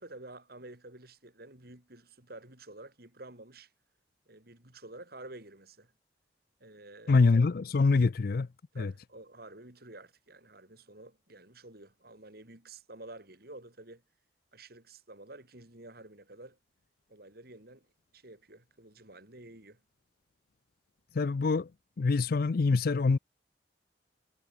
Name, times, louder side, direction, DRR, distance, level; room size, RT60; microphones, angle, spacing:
voice 1, 0.0-3.7 4.3-5.9 6.6-7.3 8.7-14.0 14.5-16.6 17.1-17.9 18.1-19.8, right 2 dB, 60° right, 4.7 m, -50 dB
voice 2, 7.1-8.5 8.8-8.9 21.1-21.7 22.0-23.2, left 4 dB, 55° left, 0.5 m, -25 dB
head